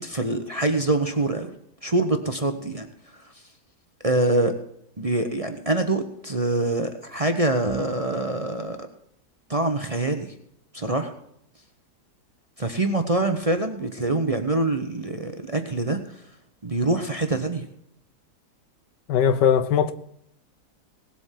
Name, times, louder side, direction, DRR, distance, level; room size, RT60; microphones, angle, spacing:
voice 1, 0.0-1.5 1.8-2.9 3.1-3.3 4.0-4.6 5.0-8.9 9.5-10.3 10.7-11.1 12.6-16.2 16.6-17.7, right 2 dB, 25° right, 0.8 m, -25 dB
voice 2, 19.1-19.9, left 8 dB, 85° left, 1.5 m, -19 dB
18.5 x 8.0 x 5.8 m
omnidirectional pair, 1.8 m